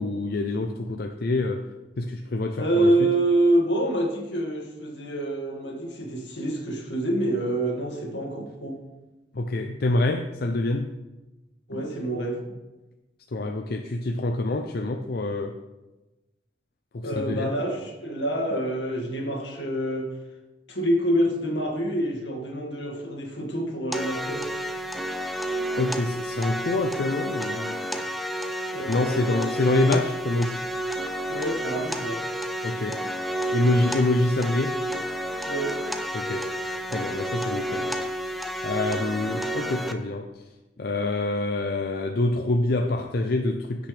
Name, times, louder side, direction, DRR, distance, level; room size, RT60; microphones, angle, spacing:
voice 1, 0.0-1.6 2.0-3.1 9.3-10.9 13.3-15.6 16.9-17.5 25.8-27.8 28.9-30.6 32.6-33.0 33.5-34.8 36.1-36.5 36.9-37.9 38.2-38.4 38.6-40.3 40.8-43.9, left 2 dB, 60° left, 4 dB, 0.5 m, -26 dB
voice 2, 2.6-8.8 11.7-12.4 17.0-20.1 20.7-24.5 28.7-29.7 31.3-32.2 35.4-35.8, right 1 dB, 80° left, 1 dB, 2.0 m, -26 dB
sound 1, 23.9-39.9, equal, ahead, 0.5 m, -30 dB
16.0 x 5.9 x 3.4 m, 1.1 s
head